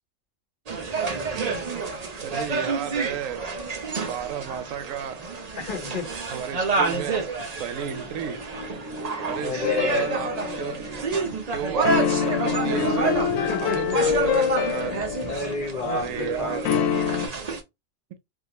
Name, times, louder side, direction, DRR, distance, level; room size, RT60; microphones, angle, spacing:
sound 1, 0.7-17.6, right 4 dB, 40° right, 0.6 m, -29 dB
voice 1, 1.3-1.8 2.2-3.5 4.1-5.2 6.3-7.3 7.6-8.5 9.2-11.0 11.5-13.3 13.6-15.0 15.9-16.7 17.2-17.3, right 9 dB, 80° right, 1.0 m, -33 dB
voice 2, 5.6-6.1 9.4-10.1 13.3-14.2 15.3-16.6, left 4 dB, 40° left, 1.3 m, -31 dB
sound 2, 7.8-16.9, right 1 dB, 5° right, 0.7 m, -40 dB
sound 3, 9.6-11.0 11.8-15.8 16.6-17.3, left 8 dB, 90° left, 1.0 m, -26 dB
3.6 x 2.5 x 2.9 m
omnidirectional pair, 1.4 m